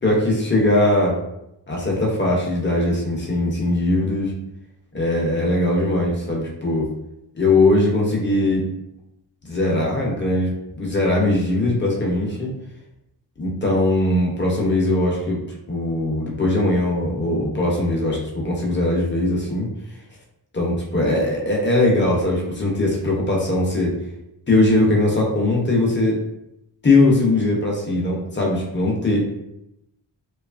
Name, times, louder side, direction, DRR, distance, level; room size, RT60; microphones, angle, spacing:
voice 1, 0.0-1.2 1.7-4.3 4.9-6.9 7.3-8.6 9.4-10.5 10.8-12.5 13.4-15.4 15.7-19.7 20.5-23.9 24.5-26.2 26.8-29.4, left 2 dB, 25° left, -2 dB, 0.5 m, -20 dB
2.7 x 2.3 x 2.3 m, 0.83 s
wide cardioid pair, 170°, 43 cm